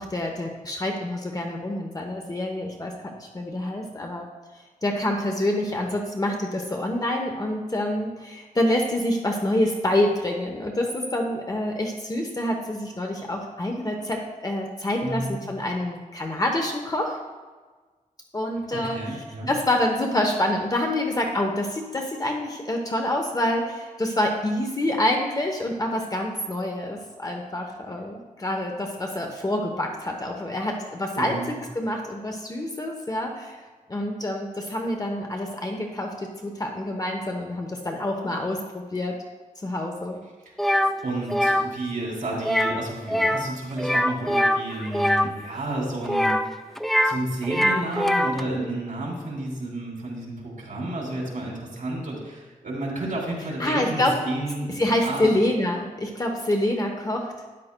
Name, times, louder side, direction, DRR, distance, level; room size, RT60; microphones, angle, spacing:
voice 1, 0.0-4.3 4.8-17.2 18.3-33.6 33.9-39.1 39.6-40.2 53.6-54.1 54.8-57.3, left 1 dB, 25° left, 2 dB, 0.9 m, -27 dB
voice 2, 15.0-15.3 18.7-19.5 31.1-31.6 41.0-46.3 47.0-55.4, right 1 dB, 70° right, -2 dB, 2.9 m, -31 dB
sound 1, 40.6-40.9 41.3-41.6 42.4-42.8 43.1-43.5 43.8-45.3 46.0-47.2 47.4-48.4, equal, ahead, 0.3 m, -22 dB
13.0 x 10.0 x 2.2 m, 1.4 s
wide cardioid pair, 160°, 14 cm